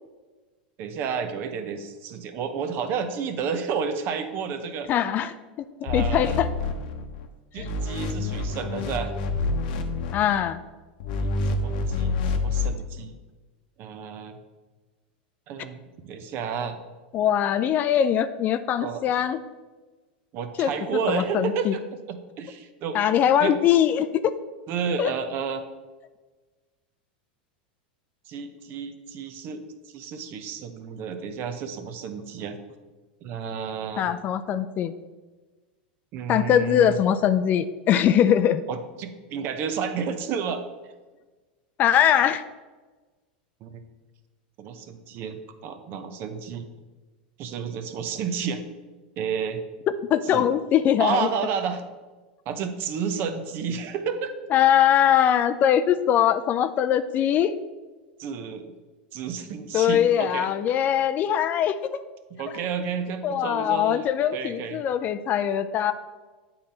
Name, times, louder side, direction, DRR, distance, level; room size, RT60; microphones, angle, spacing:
voice 1, 0.8-4.9 5.8-6.4 7.5-9.1 11.2-13.2 13.8-14.4 15.5-16.8 18.8-19.1 20.3-21.8 22.1-23.0 23.4-23.5 24.7-25.6 28.3-29.6 29.9-32.6 33.2-34.1 36.1-37.0 38.7-40.6 43.6-43.8 44.6-46.7 47.4-48.6 49.2-49.6 50.3-50.4 51.0-51.8 52.5-54.3 58.2-58.6 59.1-60.5 62.3-64.1 64.3-64.8, right 6 dB, 45° right, 8 dB, 0.8 m, -31 dB
voice 2, 4.9-5.3 5.9-6.5 7.6-7.7 10.1-10.6 17.1-19.4 20.6-20.7 21.1-21.7 22.9-24.3 25.0-25.1 34.0-34.9 36.3-38.6 41.8-42.4 50.1-51.3 54.5-57.5 59.7-62.0 63.2-65.9, left 10 dB, 35° left, 12 dB, 0.3 m, -22 dB
sound 1, 5.9-7.3 7.6-10.4 11.0-12.7, left 3 dB, 65° left, 0.8 m, -27 dB
8.5 x 3.9 x 4.3 m, 1.3 s
hypercardioid pair, 120°, 5 cm